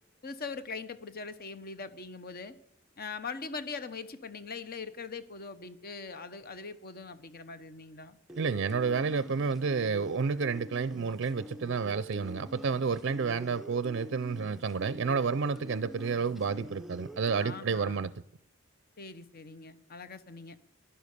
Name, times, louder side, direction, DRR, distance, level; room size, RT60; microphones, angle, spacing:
voice 1, 0.2-2.6 3.0-8.2 17.4-18.1 19.0-20.6, left 4 dB, 45° left, 0.9 m, -41 dB
sound 1, 8.3-17.6, equal, ahead, 0.5 m, -46 dB
voice 2, 8.4-18.1, right 5 dB, 60° right, 0.5 m, -30 dB
16.0 x 11.5 x 6.7 m
head